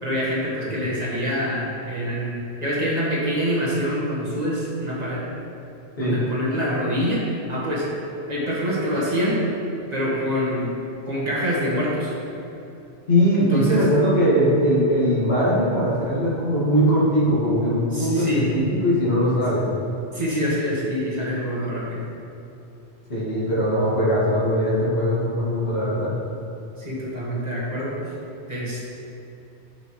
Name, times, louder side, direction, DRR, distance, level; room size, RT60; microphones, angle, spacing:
voice 1, 0.0-2.3 2.6-5.2 6.0-7.2 7.5-7.9 8.3-9.4 9.9-10.7 11.1-12.1 13.3-13.8 17.9-18.4 20.1-22.0 26.8-28.0 28.5-28.8, equal, 40° right, -6 dB, 1.4 m, -25 dB
voice 2, 13.1-19.6 23.1-26.1, equal, 65° left, -8 dB, 2.1 m, -20 dB
9.1 x 5.7 x 3.1 m, 2.9 s
omnidirectional pair, 1.2 m